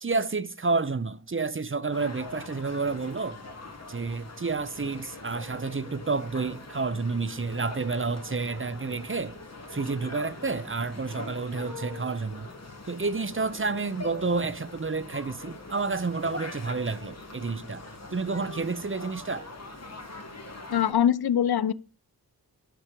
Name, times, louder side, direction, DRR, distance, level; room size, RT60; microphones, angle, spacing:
voice 1, 0.0-3.4 3.9-9.4 9.7-12.5 12.9-17.8 18.1-19.5, right 4 dB, 35° right, 0.6 m, -30 dB
sound 1, 1.9-20.9, left 2 dB, 45° left, 2.0 m, -42 dB
voice 2, 20.7-21.7, left 9 dB, 75° left, 0.5 m, -23 dB
10.0 x 6.1 x 5.1 m
wide cardioid pair, 50°, 38 cm